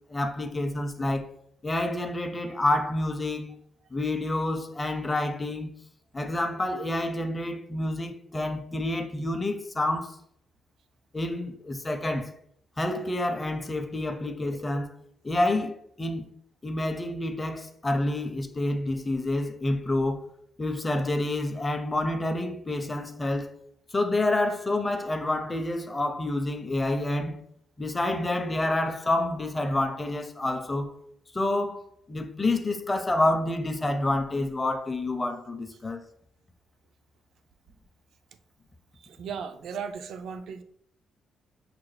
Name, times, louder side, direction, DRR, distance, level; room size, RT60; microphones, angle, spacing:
voice 1, 0.1-1.3 1.6-3.6 3.9-5.7 6.1-10.2 11.1-12.3 12.8-14.9 15.2-16.3 16.6-20.2 20.6-23.6 23.9-27.4 27.8-30.9 31.3-31.8 32.1-36.0, left 1 dB, 20° left, 0.5 m, -28 dB
voice 2, 39.0-40.6, right 6 dB, 70° right, 0.4 m, -37 dB
5.8 x 2.0 x 3.2 m
cardioid pair, 90°, 0 cm